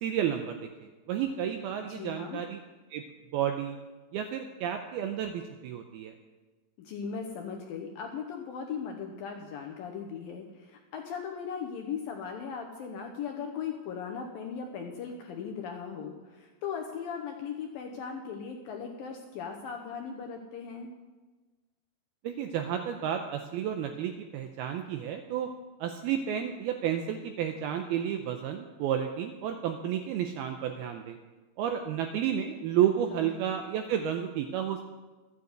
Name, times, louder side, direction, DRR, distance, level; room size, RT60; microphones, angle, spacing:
voice 1, 0.0-2.6 2.9-3.0 3.3-3.8 4.1-6.1 22.2-25.5 25.8-31.2 31.6-34.8, right 9 dB, 85° right, 6 dB, 2.2 m, -31 dB
voice 2, 1.9-2.4 6.8-20.9 33.1-33.3, left 6 dB, 75° left, 3 dB, 2.2 m, -38 dB
12.5 x 9.3 x 7.9 m, 1.3 s
omnidirectional pair, 5.1 m